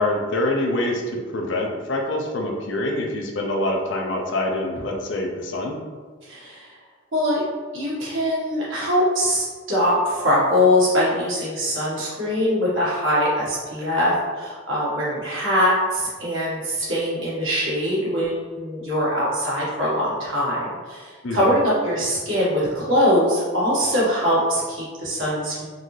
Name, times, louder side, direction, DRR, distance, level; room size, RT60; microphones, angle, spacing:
voice 1, 0.0-5.8 21.2-21.5, left 1 dB, 65° left, 1 dB, 0.5 m, -25 dB
voice 2, 6.2-6.7 7.1-7.4 7.7-25.7, equal, 75° right, -8 dB, 1.5 m, -22 dB
3.8 x 2.7 x 3.1 m, 1.5 s
head